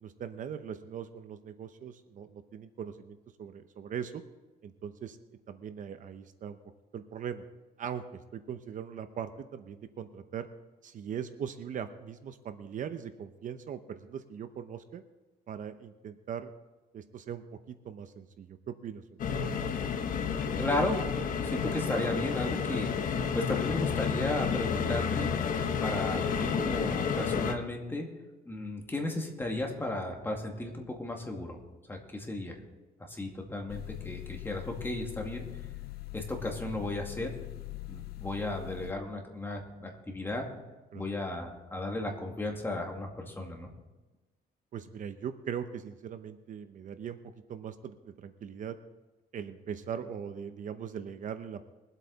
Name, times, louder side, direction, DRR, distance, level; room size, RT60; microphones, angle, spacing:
voice 1, 0.0-4.2 4.6-5.2 5.5-6.6 6.9-7.4 7.8-10.5 10.8-15.0 15.5-16.5 16.9-19.2 40.9-41.0 44.7-47.2 47.5-48.8 49.3-51.6, right 8 dB, 55° right, 10 dB, 0.8 m, -40 dB
sound 1, 19.2-27.5, left 6 dB, 60° left, 1.2 m, -31 dB
voice 2, 20.6-21.0 21.4-22.9 23.3-25.3 25.8-28.1 28.5-31.6 31.9-32.5 33.1-35.5 36.1-37.3 37.9-40.5 40.9-43.7, left 2 dB, 15° left, 1 dB, 2.2 m, -34 dB
sound 2, 33.7-38.9, left 20 dB, 85° left, 0.4 m, -42 dB
22.0 x 8.2 x 4.1 m, 1.2 s
cardioid pair, 130°, 16 cm